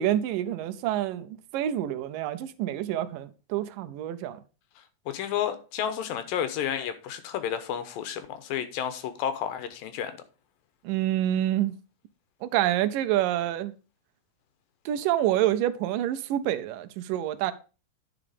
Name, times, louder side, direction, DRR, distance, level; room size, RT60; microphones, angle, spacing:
voice 1, 0.0-4.4 10.8-11.8 12.4-13.7 14.9-17.5, right 12 dB, 80° right, 2.2 m, -27 dB
voice 2, 5.1-10.1, left 9 dB, 80° left, 2.6 m, -31 dB
9.6 x 4.9 x 5.0 m
omnidirectional pair, 4.0 m